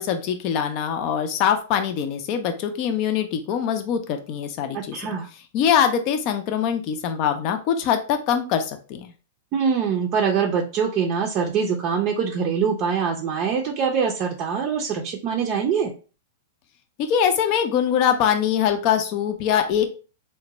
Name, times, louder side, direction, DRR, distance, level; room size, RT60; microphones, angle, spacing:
voice 1, 0.0-5.1 5.5-9.1 17.0-19.9, left 8 dB, 45° left, 6 dB, 0.5 m, -23 dB
voice 2, 4.7-5.3 9.5-15.9, right 6 dB, 40° right, 1 dB, 0.5 m, -24 dB
3.7 x 2.2 x 2.9 m, 0.35 s
figure-of-eight pair, 100°, 0 cm